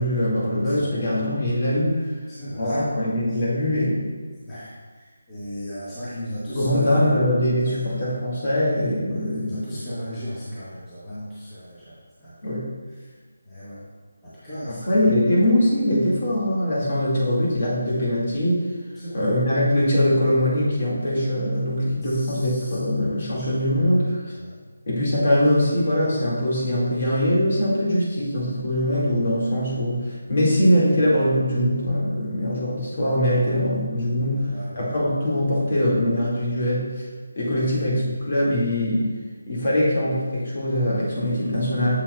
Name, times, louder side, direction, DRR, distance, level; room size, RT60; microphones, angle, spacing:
voice 1, 0.0-2.1 2.5-4.1 6.5-9.6 12.4-12.7 14.7-18.7 19.1-24.2 24.9-34.4 34.7-36.9 37.3-39.1 39.5-42.0, equal, 40° left, -6 dB, 1.8 m, -22 dB
voice 2, 2.3-2.9 4.4-4.7 5.3-7.0 7.6-7.8 9.1-11.9 12.2-12.6 13.5-13.8 14.2-15.0 19.0-19.2 21.5-22.8 23.3-23.7 24.4-24.5 34.3-34.9 37.5-37.7, equal, 10° left, -13 dB, 1.3 m, -36 dB
7.1 x 7.0 x 2.2 m, 1.4 s
figure-of-eight pair, 170°, 0 cm